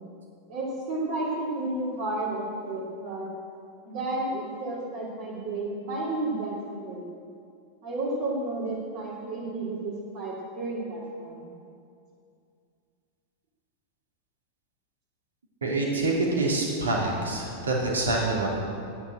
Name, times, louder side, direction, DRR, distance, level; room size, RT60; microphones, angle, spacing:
voice 1, 0.5-3.3 3.9-7.1 7.8-11.5, right 2 dB, 50° right, -7 dB, 2.9 m, -32 dB
voice 2, 15.6-18.5, right 2 dB, 70° right, -2 dB, 3.0 m, -26 dB
11.5 x 10.0 x 7.7 m, 2.4 s
figure-of-eight pair, 90°, 0 cm